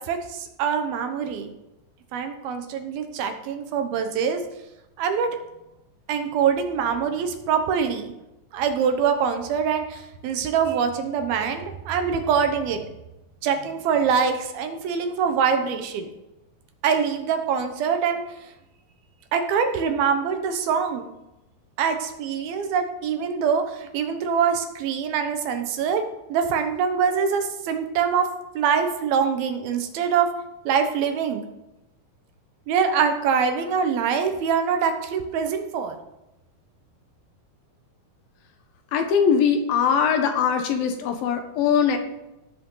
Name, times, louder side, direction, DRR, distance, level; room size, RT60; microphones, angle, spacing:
voice 1, 0.0-1.5 2.1-4.4 5.0-5.3 6.1-8.1 8.5-12.8 13.4-16.1 16.8-18.5 19.3-21.1 21.8-26.0 26.3-28.3 28.6-30.3 30.7-31.4 32.7-36.0, right 6 dB, 75° right, 6 dB, 2.9 m, -24 dB
voice 2, 38.9-42.0, left 7 dB, 75° left, 6 dB, 2.7 m, -21 dB
17.0 x 7.6 x 3.9 m, 0.92 s
omnidirectional pair, 4.4 m